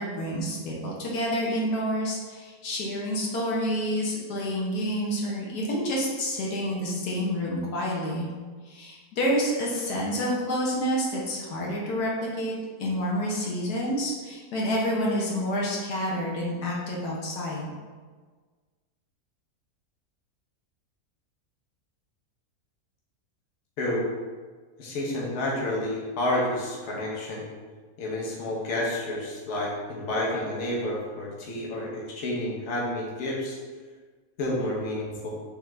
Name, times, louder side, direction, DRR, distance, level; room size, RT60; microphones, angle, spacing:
voice 1, 0.0-8.3 8.6-17.7, equal, 80° left, -3 dB, 1.3 m, -28 dB
voice 2, 24.8-27.4 28.0-33.6 34.4-35.3, left 1 dB, 55° left, -4 dB, 1.0 m, -30 dB
3.6 x 3.4 x 3.1 m, 1.5 s
omnidirectional pair, 1.6 m